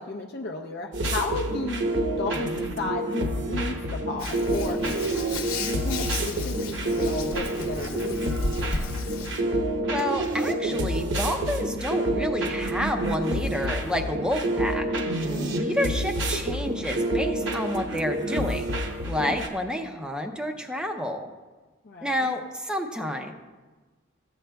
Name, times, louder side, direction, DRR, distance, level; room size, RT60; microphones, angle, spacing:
voice 1, 0.0-1.8 2.2-4.8 5.8-8.2 15.3-15.8 19.2-19.5 21.8-22.3, left 3 dB, 50° left, 2 dB, 0.5 m, -34 dB
sound 1, 0.9-19.5, right 1 dB, 60° right, 1.0 m, -28 dB
Hands, 4.2-9.4, left 3 dB, 80° left, 0.9 m, -34 dB
voice 2, 9.9-14.9 15.5-18.7 19.1-21.3 22.0-23.3, left 1 dB, 5° right, 4 dB, 0.5 m, -29 dB
14.5 x 8.7 x 2.3 m, 1.3 s
head